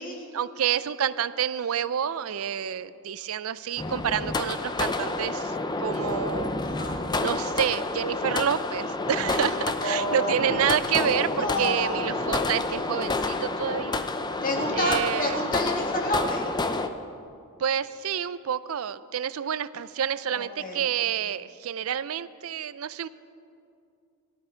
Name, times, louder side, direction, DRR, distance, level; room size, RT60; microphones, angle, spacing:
voice 1, 0.1-6.5 7.2-14.0 14.7-15.4 17.6-23.1, right 8 dB, 70° right, 16 dB, 0.4 m, -28 dB
sound 1, 3.8-16.9, left 2 dB, 20° left, 0.5 m, -29 dB
voice 2, 6.6-7.1 9.8-10.9 11.3-12.1 14.4-16.5 20.3-20.9, left 1 dB, 40° left, 1 dB, 1.8 m, -30 dB
17.5 x 13.0 x 4.5 m, 2.4 s
head